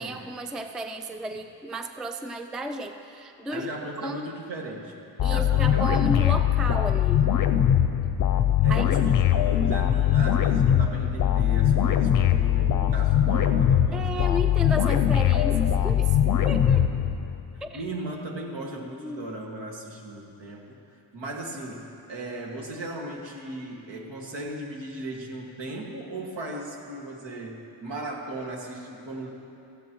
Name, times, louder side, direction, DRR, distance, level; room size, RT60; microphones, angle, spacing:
voice 1, 0.0-3.7 4.0-4.3 5.2-7.3 8.7-8.9 13.9-16.2 16.4-17.0 17.6-17.8 19.0-19.3, equal, ahead, 6 dB, 0.3 m, -33 dB
voice 2, 3.5-6.1 8.6-14.5 14.8-14.9 17.7-20.8 21.1-29.3, right 1 dB, 65° right, -1 dB, 2.1 m, -37 dB
sound 1, 5.2-17.5, left 10 dB, 45° left, 0.6 m, -21 dB
17.0 x 14.5 x 3.1 m, 2.7 s
cardioid pair, 125°, 46 cm